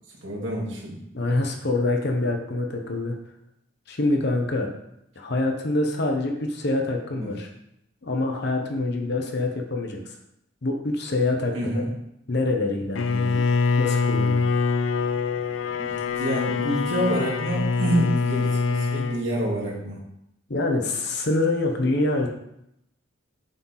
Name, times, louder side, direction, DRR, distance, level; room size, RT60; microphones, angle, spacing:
voice 1, 0.2-1.0 7.1-7.3 11.5-11.9 15.8-20.0, right 1 dB, 70° right, -4 dB, 2.3 m, -27 dB
voice 2, 1.1-3.2 3.9-4.7 5.2-7.5 8.0-10.0 10.6-11.9 12.3-13.4 13.8-14.5 20.5-22.3, left 2 dB, 55° left, 2 dB, 1.0 m, -25 dB
Bowed string instrument, 12.9-19.2, left 4 dB, 80° left, 0.5 m, -24 dB
7.6 x 4.6 x 4.0 m, 0.79 s
head